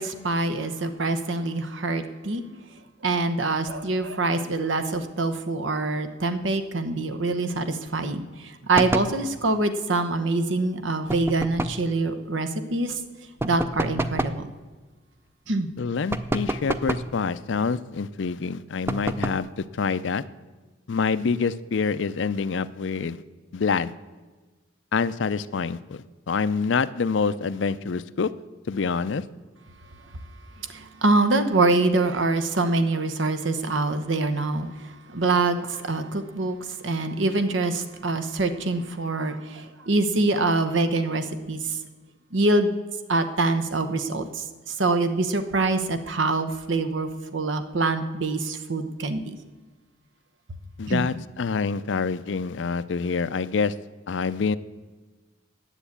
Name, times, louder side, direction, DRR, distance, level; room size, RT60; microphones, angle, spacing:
voice 1, 0.0-2.4 3.0-12.9 13.4-14.5 15.5-15.7 30.7-34.7 35.1-36.6 36.8-41.6 42.3-42.7 43.1-49.4 50.9-51.1, right 2 dB, 85° right, 9 dB, 1.1 m, -25 dB
sound 1, 8.7-9.2 11.1-11.9 13.4-14.4 16.1-17.2 18.9-19.5, right 1 dB, 15° right, 0.5 m, -28 dB
voice 2, 15.8-20.2 20.9-23.2 23.5-23.9 24.9-28.3 28.7-29.2 50.8-53.7 54.1-54.6, left 5 dB, 75° left, 15 dB, 0.5 m, -26 dB
10.0 x 8.0 x 8.4 m, 1.3 s
head